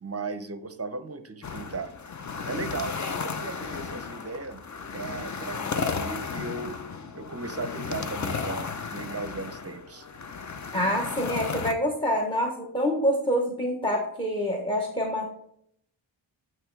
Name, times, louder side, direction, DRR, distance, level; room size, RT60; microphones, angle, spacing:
voice 1, 0.0-1.9 2.4-4.6 4.9-10.1, right 3 dB, 30° right, 10 dB, 0.7 m, -36 dB
sound 1, 1.4-11.7, left 5 dB, 40° left, 0.6 m, -34 dB
voice 2, 10.7-15.3, equal, 10° left, 1 dB, 1.0 m, -26 dB
8.9 x 3.2 x 4.6 m, 0.69 s
wide cardioid pair, 80°, 48 cm